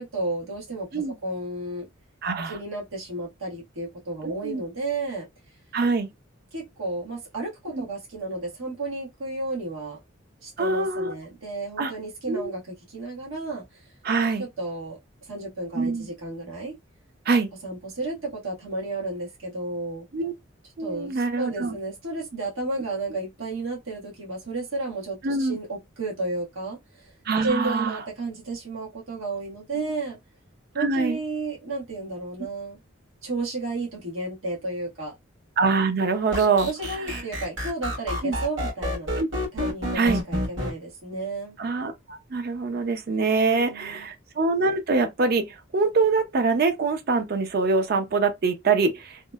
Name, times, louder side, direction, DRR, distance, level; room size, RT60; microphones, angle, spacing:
voice 1, 0.0-1.9 2.4-5.3 6.5-10.0 10.4-13.9 14.4-15.0 15.3-16.7 17.6-20.1 20.8-27.1 27.4-30.2 30.7-32.8 33.2-35.2 36.6-39.1 39.5-41.6 43.3-44.1, right 2 dB, 85° right, 1.1 m, -32 dB
voice 2, 2.2-2.6 4.2-4.6 5.7-6.1 7.7-7.8 10.6-11.1 11.8-11.9 12.3-12.5 14.0-14.5 15.8-16.1 17.3-17.5 20.1-20.3 20.8-21.8 25.2-25.6 27.3-28.0 29.7-29.8 30.8-31.2 35.6-36.7 37.1-37.2 38.2-38.4 39.2-39.3 39.9-40.2 41.6-49.3, right 4 dB, 50° right, 0.4 m, -24 dB
sound 1, 36.3-40.7, equal, 65° right, 1.4 m, -28 dB
2.9 x 2.0 x 2.2 m
head